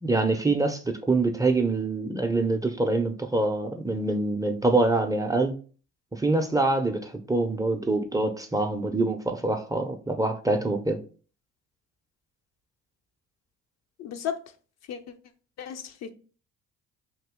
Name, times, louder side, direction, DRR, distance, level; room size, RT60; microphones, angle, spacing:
voice 1, 0.0-5.5 6.1-11.0, right 2 dB, 10° right, 0.5 m, -25 dB
voice 2, 14.0-14.4 14.9-15.0 15.6-16.1, left 8 dB, 60° left, 0.5 m, -33 dB
2.9 x 2.7 x 3.5 m
supercardioid pair, 65°, 32 cm